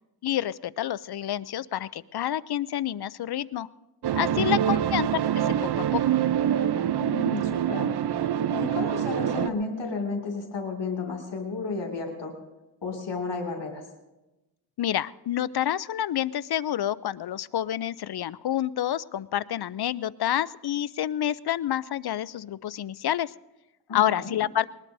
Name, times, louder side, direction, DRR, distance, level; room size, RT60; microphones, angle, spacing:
voice 1, 0.2-3.7 4.2-5.1 5.3-6.2 14.8-23.3 23.9-24.7, left 11 dB, 65° left, 18 dB, 0.5 m, -28 dB
sound 1, 4.0-9.5, right 10 dB, 70° right, 0.6 m, -25 dB
voice 2, 4.4-4.7 7.0-12.3 12.8-13.8 23.9-24.3, left 3 dB, 85° left, 0 dB, 2.3 m, -33 dB
20.5 x 20.0 x 2.7 m, 1.0 s
cardioid pair, 55°, 42 cm